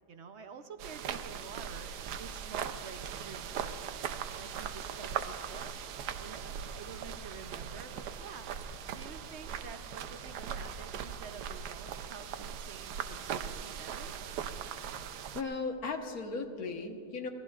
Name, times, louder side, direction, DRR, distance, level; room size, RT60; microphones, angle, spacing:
voice 1, 0.1-1.9 2.2-3.8 4.4-5.8 6.2-8.5 8.9-14.1, right 5 dB, 55° right, 8 dB, 0.8 m, -49 dB
sound 1, 0.8-15.4, right 8 dB, 75° right, 1.2 m, -40 dB
voice 2, 15.3-17.3, left 4 dB, 60° left, 4 dB, 1.7 m, -36 dB
26.0 x 21.0 x 2.4 m, 2.4 s
omnidirectional pair, 1.8 m